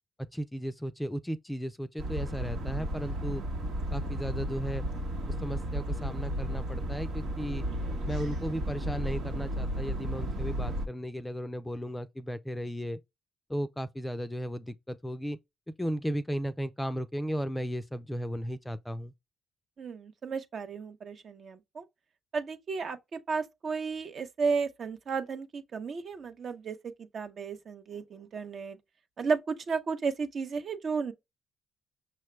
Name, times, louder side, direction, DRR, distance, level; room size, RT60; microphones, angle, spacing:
voice 1, 0.3-3.4 3.9-4.8 5.4-7.7 8.0-13.0 13.5-15.4 15.8-19.1, equal, 10° left, 0.4 m, -35 dB
sound 1, 2.0-10.9, right 1 dB, 85° right, 1.1 m, -33 dB
voice 2, 19.8-21.9 22.3-28.8 29.2-31.1, right 5 dB, 55° right, 0.7 m, -33 dB
5.8 x 2.2 x 3.2 m
cardioid pair, 90°, 0 cm